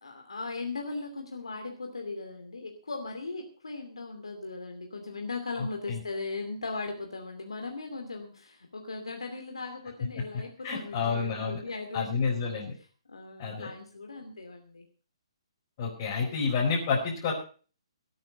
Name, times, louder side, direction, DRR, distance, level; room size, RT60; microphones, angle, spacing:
voice 1, 0.0-12.5 13.1-14.9, left 3 dB, 75° left, 3 dB, 2.7 m, -38 dB
voice 2, 10.6-11.6 11.9-12.7 13.4-13.7 15.8-17.3, left 5 dB, 35° left, -4 dB, 4.9 m, -29 dB
17.5 x 9.3 x 5.5 m, 0.40 s
figure-of-eight pair, 135°, 3 cm